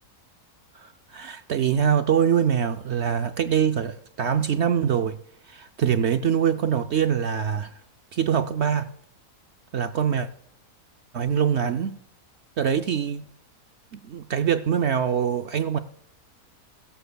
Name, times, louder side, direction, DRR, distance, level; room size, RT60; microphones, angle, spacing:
voice 1, 0.8-5.2 5.5-7.8 8.1-8.9 9.7-10.3 11.1-12.0 12.6-13.2 13.9-15.8, right 8 dB, 70° right, 0.6 m, -24 dB
16.5 x 13.5 x 2.2 m
omnidirectional pair, 1.7 m